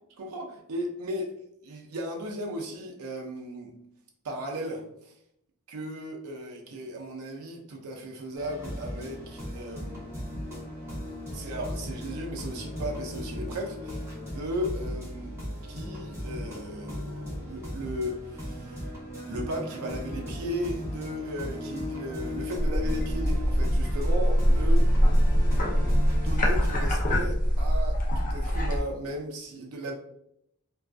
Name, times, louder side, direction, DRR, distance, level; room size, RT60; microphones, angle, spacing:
voice 1, 0.2-1.3 1.6-3.7 4.2-5.1 5.7-10.3 11.3-18.9 19.3-24.9 26.1-29.9, equal, 75° right, 1 dB, 0.4 m, -36 dB
sound 1, 8.4-27.0, left 1 dB, 10° right, 0.8 m, -37 dB
sound 2, 22.6-28.8, equal, 40° left, 0.4 m, -23 dB
2.4 x 2.3 x 2.3 m, 0.74 s
head